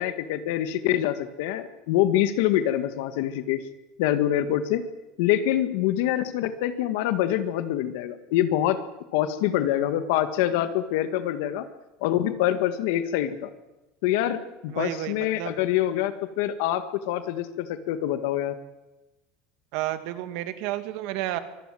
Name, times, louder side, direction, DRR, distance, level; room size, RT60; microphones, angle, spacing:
voice 1, 0.0-3.6 4.0-4.8 5.2-8.8 9.1-11.6 12.0-13.5 14.0-18.6, left 12 dB, 70° left, 10 dB, 1.7 m, -25 dB
voice 2, 14.7-15.5 19.7-21.4, right 14 dB, 60° right, 10 dB, 2.3 m, -31 dB
24.5 x 20.5 x 7.8 m, 1.0 s
cardioid pair, 165°, 0 cm